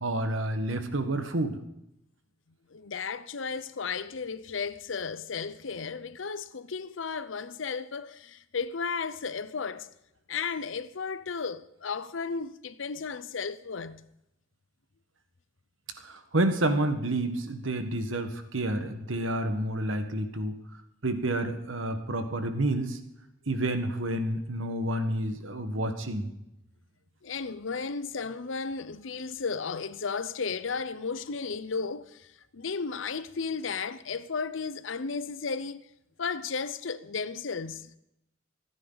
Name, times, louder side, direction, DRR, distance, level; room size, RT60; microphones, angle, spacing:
voice 1, 0.0-1.6 16.0-20.6 21.0-23.0 23.5-26.3, right 1 dB, 75° right, 1.5 m, -29 dB
voice 2, 2.7-9.9 10.3-14.1 27.2-35.8 36.2-37.9, left 5 dB, 70° left, 0.7 m, -34 dB
26.5 x 9.8 x 4.0 m
head